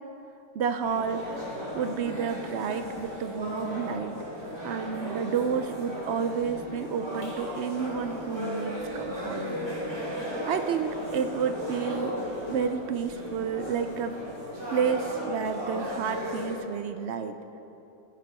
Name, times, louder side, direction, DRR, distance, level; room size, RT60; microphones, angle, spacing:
voice 1, 0.5-1.4 1.7-4.1 4.6-9.4 10.5-12.2 12.5-14.2 14.7-17.4, right 6 dB, 70° right, 9 dB, 0.6 m, -30 dB
sound 1, 0.8-16.6, equal, 15° right, 2.5 m, -36 dB
14.0 x 6.7 x 5.4 m, 3.0 s
omnidirectional pair, 1.6 m